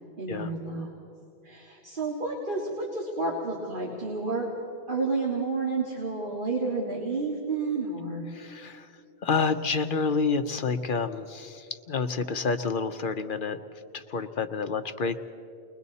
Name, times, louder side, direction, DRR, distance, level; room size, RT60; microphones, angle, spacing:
voice 1, 0.2-0.9 1.4-4.5 4.9-8.2, right 3 dB, 55° right, -2 dB, 2.2 m, -30 dB
voice 2, 8.3-8.9 9.2-13.6 13.9-15.2, left 4 dB, 55° left, 8 dB, 0.9 m, -29 dB
30.0 x 22.0 x 4.1 m, 2.5 s
omnidirectional pair, 1.1 m